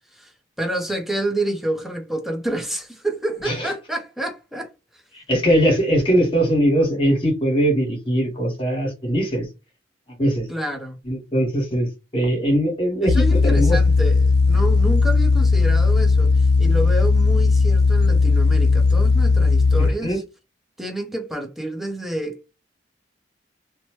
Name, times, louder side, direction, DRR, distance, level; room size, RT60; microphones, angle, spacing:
voice 1, 0.6-4.7 4.9-5.0 10.5-11.0 13.0-20.2 20.8-22.5, right 1 dB, ahead, 0.6 m, -28 dB
voice 2, 5.1-9.5 10.2-10.5 11.1-11.9 12.1-13.8 19.8-20.2, equal, 30° left, 1.5 m, -21 dB
sound 1, 13.1-19.9, left 4 dB, 60° left, 0.4 m, -16 dB
2.9 x 2.1 x 3.0 m
head